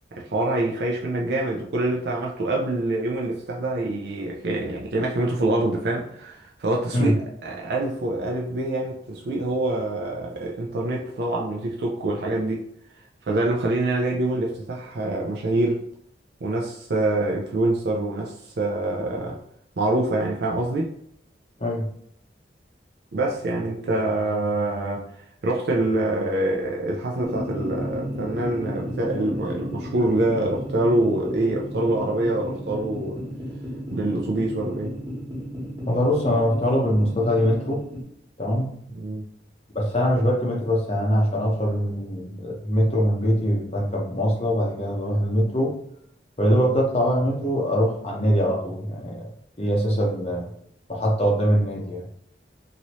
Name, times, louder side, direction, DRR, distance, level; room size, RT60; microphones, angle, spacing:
voice 1, 0.3-7.1 7.4-12.6 13.3-15.8 16.4-19.4 19.8-20.9 23.1-25.0 25.4-33.2 33.9-35.0 38.9-39.2, right 2 dB, 65° right, 0.4 m, -25 dB
sound 1, 27.2-38.0, equal, 20° right, 1.1 m, -34 dB
voice 2, 35.9-37.8 38.4-38.7 39.7-45.7 46.4-49.2 49.6-50.5 50.9-52.1, equal, 35° left, 0.7 m, -22 dB
2.9 x 2.6 x 3.0 m
head